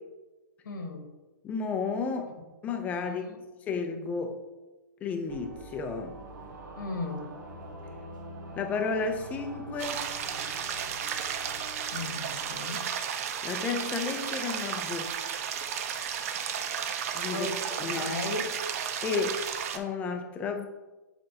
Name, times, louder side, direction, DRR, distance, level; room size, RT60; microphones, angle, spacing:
voice 1, 0.6-1.1 3.0-3.4 6.8-7.3 11.9-12.9 17.3-18.5, left 2 dB, 80° left, 4 dB, 1.3 m, -36 dB
voice 2, 1.4-2.4 2.6-3.2 3.7-4.4 5.0-6.2 8.6-10.1 13.4-15.1 17.1-17.5 17.8-18.1 19.0-19.4 19.7-20.7, left 4 dB, 15° left, 5 dB, 0.5 m, -32 dB
sound 1, 5.3-12.6, right 1 dB, 75° right, 1.4 m, -45 dB
sound 2, 9.8-19.8, right 8 dB, 45° right, 0.6 m, -33 dB
7.5 x 4.4 x 2.8 m, 1.1 s
hypercardioid pair, 150°, 10 cm